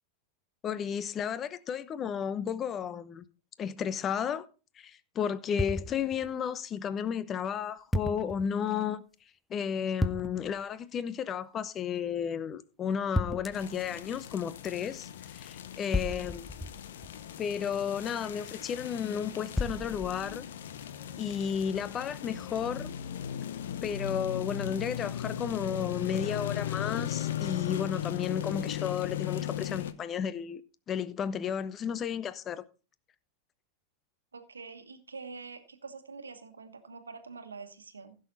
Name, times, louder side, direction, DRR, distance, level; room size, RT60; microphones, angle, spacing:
voice 1, 0.6-3.2 3.6-4.4 4.8-9.0 9.5-16.4 17.4-20.4 21.2-22.9 23.8-30.6 30.9-32.6, left 8 dB, 30° left, 0.9 m, -33 dB
sound 1, 5.6-6.3 7.9-8.5 10.0-10.6 13.2-13.8 15.9-17.3 19.6-20.4, left 1 dB, 5° left, 0.9 m, -33 dB
sound 2, 13.5-29.9, left 10 dB, 70° left, 0.9 m, -37 dB
voice 2, 34.3-38.2, right 4 dB, 85° right, 1.4 m, -45 dB
15.5 x 6.6 x 4.1 m
hypercardioid pair, 95°, 0 cm